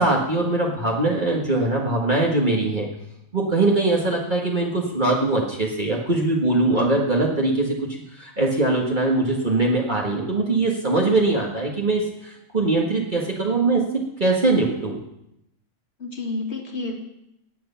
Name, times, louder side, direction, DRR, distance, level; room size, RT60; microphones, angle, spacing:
voice 1, 0.0-2.9 3.3-13.8 14.2-15.0, right 2 dB, 40° right, -3 dB, 1.9 m, -22 dB
voice 2, 16.0-16.9, left 3 dB, 60° left, 1 dB, 2.6 m, -30 dB
19.0 x 7.8 x 5.7 m, 0.83 s
omnidirectional pair, 1.3 m